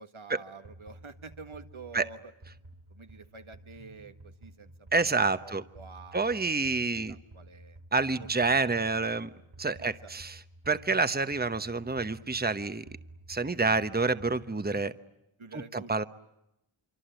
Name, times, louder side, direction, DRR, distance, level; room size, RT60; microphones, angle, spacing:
voice 1, 0.0-2.3 2.9-6.7 7.1-7.8 8.2-8.5 8.8-8.9 9.8-10.1 15.4-16.0, right 4 dB, 85° right, 8 dB, 1.8 m, -48 dB
sound 1, 0.6-14.9, right 1 dB, 70° right, 5.5 m, -52 dB
voice 2, 4.9-5.6 6.1-7.2 7.9-9.3 9.6-10.4 10.7-12.8 13.3-14.9 15.5-16.0, right 3 dB, 20° right, 12 dB, 1.0 m, -28 dB
26.5 x 25.0 x 9.0 m, 0.87 s
wide cardioid pair, 50°, 47 cm